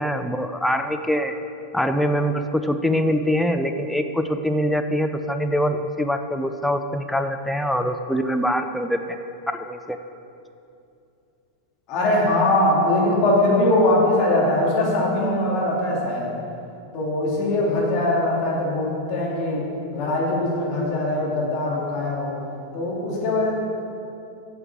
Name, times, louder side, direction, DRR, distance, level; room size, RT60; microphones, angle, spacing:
voice 1, 0.0-1.3 1.7-9.2 9.5-10.0, equal, ahead, 6 dB, 0.5 m, -24 dB
voice 2, 11.9-16.3 16.9-22.3 22.7-23.5, left 1 dB, 40° left, -4 dB, 2.8 m, -21 dB
9.1 x 6.6 x 7.3 m, 2.6 s
figure-of-eight pair, 90°, 0 cm